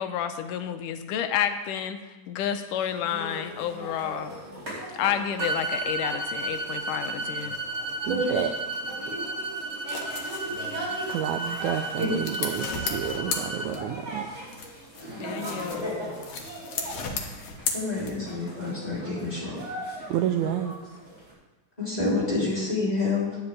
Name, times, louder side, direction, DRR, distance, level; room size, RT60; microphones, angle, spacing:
voice 1, 0.0-2.0 2.3-4.4 4.9-7.6 15.2-16.2, left 9 dB, 80° left, 8 dB, 2.1 m, -30 dB
sound 1, 2.7-21.3, right 1 dB, 30° right, 4.8 m, -39 dB
sound 2, 5.4-13.7, right 2 dB, 70° right, 1.5 m, -33 dB
voice 2, 8.1-8.5 11.1-14.2 20.1-20.7, right 10 dB, 85° right, 5 dB, 1.7 m, -29 dB
sound 3, 9.6-14.1 14.5-18.5, left 5 dB, 60° left, 1.6 m, -36 dB
voice 3, 17.7-19.5 21.8-23.4, left 2 dB, 10° left, -8 dB, 3.2 m, -28 dB
9.8 x 5.7 x 8.3 m, 1.2 s
omnidirectional pair, 3.9 m